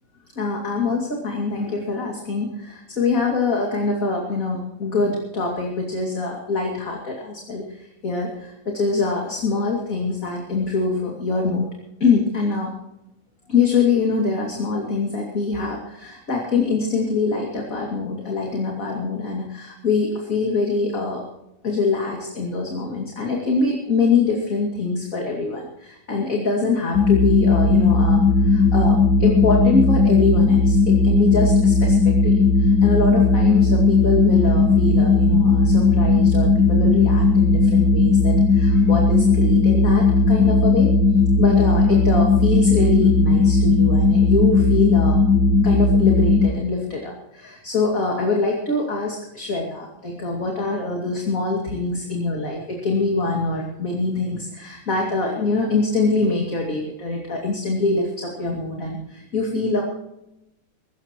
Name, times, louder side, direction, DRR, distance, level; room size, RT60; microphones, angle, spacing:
voice 1, 0.4-11.7 12.0-12.7 13.5-21.2 21.6-40.9 41.4-45.2 45.6-59.8, left 3 dB, 50° left, 0 dB, 2.9 m, -24 dB
sound 1, 26.9-46.5, left 3 dB, 75° left, 1.7 m, -16 dB
23.0 x 14.5 x 3.0 m, 0.86 s
omnidirectional pair, 1.9 m